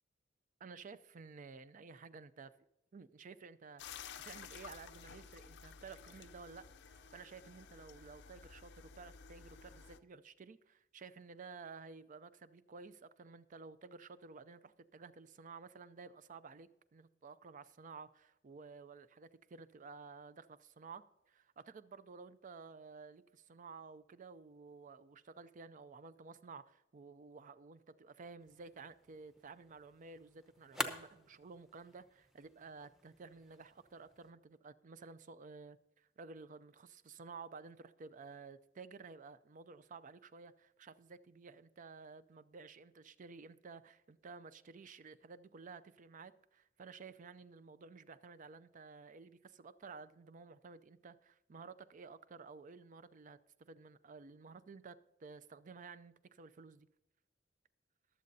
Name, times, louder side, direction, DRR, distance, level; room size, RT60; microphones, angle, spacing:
voice 1, 0.6-2.5 2.9-56.9, right 4 dB, 45° right, 0.4 m, -53 dB
sound 1, 3.8-10.0, left 7 dB, 60° left, 0.5 m, -53 dB
sound 2, 28.4-34.3, equal, ahead, 0.8 m, -48 dB
22.5 x 7.5 x 2.7 m
head